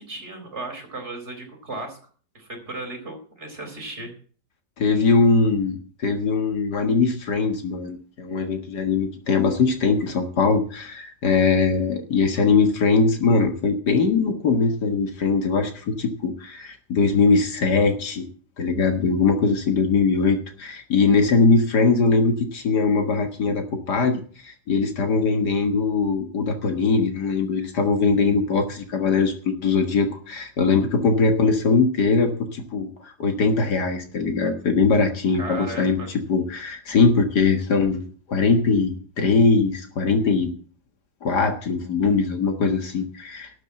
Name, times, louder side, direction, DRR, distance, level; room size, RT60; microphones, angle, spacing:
voice 1, 0.0-2.0 2.3-4.1 35.3-36.1, right 2 dB, 40° right, 4 dB, 4.4 m, -35 dB
voice 2, 4.8-18.3 18.6-38.0 38.3-40.5 41.2-43.6, left 4 dB, 65° left, 6 dB, 2.1 m, -21 dB
12.5 x 7.6 x 7.7 m, 0.43 s
omnidirectional pair, 1.9 m